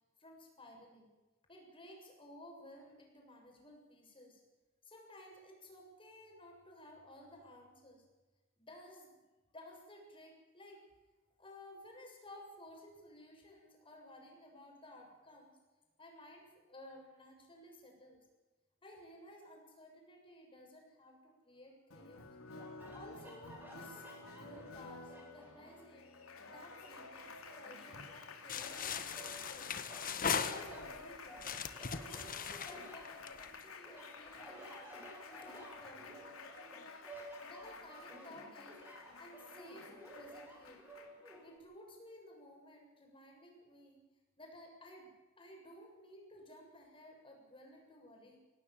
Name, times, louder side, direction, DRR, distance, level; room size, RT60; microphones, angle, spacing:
voice 1, 0.2-1.1 1.5-4.4 4.8-8.0 8.6-9.2 9.5-10.8 11.4-15.6 16.0-18.2 18.8-22.3 22.9-24.0 24.4-26.1 26.5-29.8 30.3-31.4 31.8-34.9 35.3-36.3 37.4-38.8 39.2-40.9 41.4-44.0 44.4-48.4, left 1 dB, 25° left, 1 dB, 7.2 m, -56 dB
Applause, 21.9-41.6, left 4 dB, 85° left, 3.1 m, -52 dB
sound 1, 22.5-26.0 26.4-28.2 28.6-29.4 29.9-33.5 33.8-41.4, right 1 dB, 10° right, 8.0 m, -54 dB
sound 2, 28.5-31.0 31.4-33.6, left 6 dB, 40° left, 1.5 m, -39 dB
26.0 x 17.5 x 7.7 m, 1.2 s
head